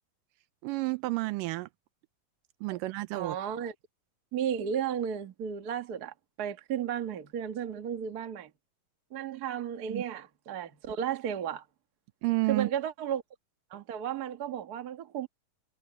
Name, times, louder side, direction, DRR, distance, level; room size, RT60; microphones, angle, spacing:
voice 1, 0.6-1.7 2.6-3.4 9.9-10.0 12.2-12.7, right 21 dB, 85° right, 2.2 m, -30 dB
voice 2, 3.1-3.7 4.3-8.5 9.1-11.6 12.5-13.2 13.7-15.3, right 9 dB, 65° right, 0.9 m, -34 dB
omnidirectional pair, 3.9 m